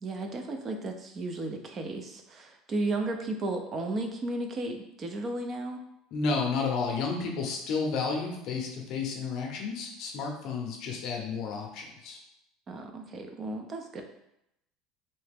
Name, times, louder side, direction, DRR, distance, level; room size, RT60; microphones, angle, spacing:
voice 1, 0.0-5.8 12.7-14.0, right 2 dB, 25° right, 4 dB, 0.4 m, -34 dB
voice 2, 6.1-12.2, left 4 dB, 45° left, 1 dB, 0.6 m, -31 dB
3.2 x 2.8 x 3.4 m, 0.82 s
cardioid pair, 165°, 0 cm